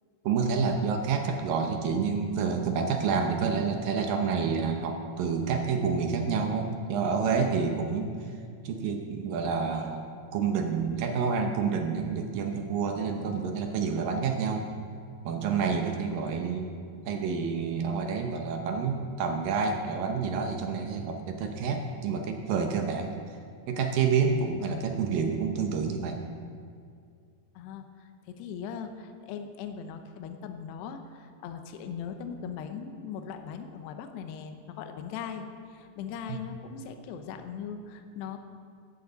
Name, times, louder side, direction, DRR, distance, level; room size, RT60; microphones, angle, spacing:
voice 1, 0.2-8.1 8.6-10.1 10.3-14.7 15.2-16.7 17.1-23.2 23.7-26.2 36.3-36.4, right 5 dB, 75° right, 4 dB, 2.1 m, -28 dB
voice 2, 13.2-13.9 24.6-24.8 27.6-38.4, left 7 dB, 75° left, 7 dB, 2.8 m, -40 dB
17.0 x 14.0 x 4.0 m, 2.2 s
omnidirectional pair, 5.1 m